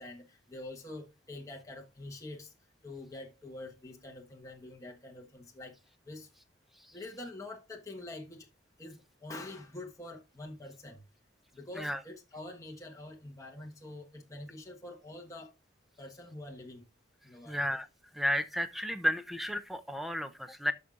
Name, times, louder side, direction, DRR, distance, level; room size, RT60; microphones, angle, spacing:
voice 1, 0.0-2.5 2.8-5.8 6.0-6.3 6.9-8.5 8.8-11.0 11.5-15.5 16.0-16.8 17.2-17.6, left 2 dB, 15° left, 1.3 m, -46 dB
voice 2, 17.5-17.9 18.1-20.7, equal, ahead, 0.7 m, -32 dB
13.5 x 5.4 x 2.5 m
head